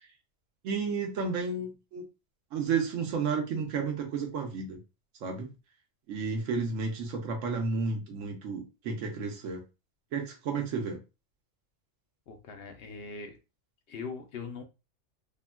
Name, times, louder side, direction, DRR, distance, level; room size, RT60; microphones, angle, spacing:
voice 1, 0.6-2.0 2.5-4.8 5.2-5.5 6.1-9.6 10.1-11.0, right 5 dB, 85° right, 2 dB, 1.1 m, -32 dB
voice 2, 12.3-13.4 13.9-14.6, left 4 dB, 60° left, 6 dB, 0.8 m, -41 dB
3.6 x 2.2 x 2.2 m, 0.28 s
omnidirectional pair, 1.3 m